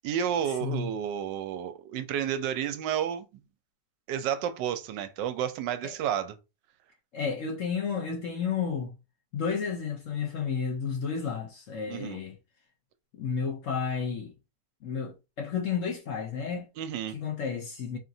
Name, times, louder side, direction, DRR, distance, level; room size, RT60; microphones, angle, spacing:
voice 1, 0.0-3.3 4.1-6.4 11.9-12.2 16.8-17.2, right 9 dB, 80° right, 1.3 m, -31 dB
voice 2, 7.1-9.0 9.3-12.3 13.1-14.3 14.8-16.7 17.1-18.0, left 6 dB, 60° left, 0.9 m, -32 dB
4.7 x 2.9 x 2.7 m
omnidirectional pair, 1.9 m